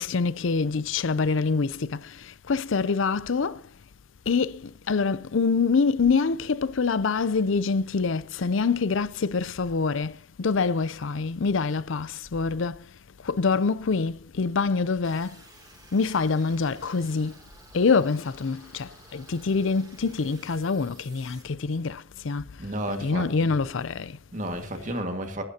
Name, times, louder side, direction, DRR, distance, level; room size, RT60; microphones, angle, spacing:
voice 1, 0.0-3.6 4.3-12.8 13.2-15.3 15.9-17.4 17.7-22.5 23.0-24.2, left 4 dB, 65° left, 0.5 m, -25 dB
sound 1, 15.0-21.4, right 3 dB, 20° right, 2.7 m, -53 dB
voice 2, 22.6-23.5 24.3-25.4, right 1 dB, 40° right, 1.9 m, -32 dB
23.5 x 11.5 x 2.8 m
head